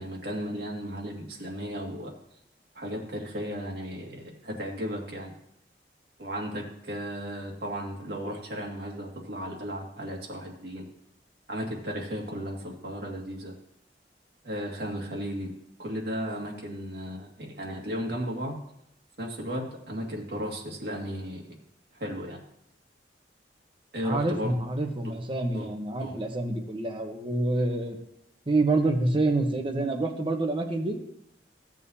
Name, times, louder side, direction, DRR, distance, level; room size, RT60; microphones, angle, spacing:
voice 1, 0.0-2.1 2.8-5.3 6.2-10.9 11.5-13.5 14.4-15.5 15.8-18.6 19.2-21.5 21.9-22.4 23.9-24.5 25.0-25.1 25.5-25.7 26.0-26.2, equal, 65° right, -1 dB, 2.1 m, -35 dB
voice 2, 24.0-28.0 28.5-31.0, right 2 dB, 30° right, 3 dB, 1.0 m, -27 dB
15.0 x 7.4 x 2.8 m, 0.77 s
head